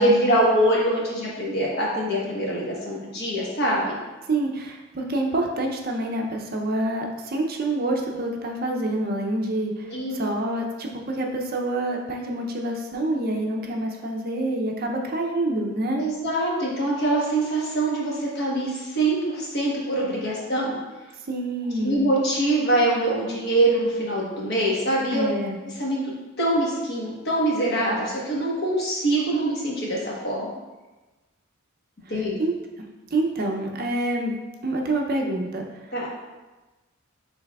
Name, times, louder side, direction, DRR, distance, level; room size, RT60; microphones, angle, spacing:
voice 1, 0.0-4.0 9.8-10.2 15.9-20.8 21.8-25.3 25.6-26.1 26.4-30.5 32.1-32.4 35.9-36.1, right 1 dB, 50° left, -4 dB, 1.1 m, -24 dB
voice 2, 4.3-16.0 21.3-22.1 25.1-25.6 32.4-32.5 33.1-34.3 34.6-36.1, right 1 dB, 45° right, 1 dB, 0.5 m, -27 dB
6.8 x 3.3 x 2.3 m, 1.2 s
head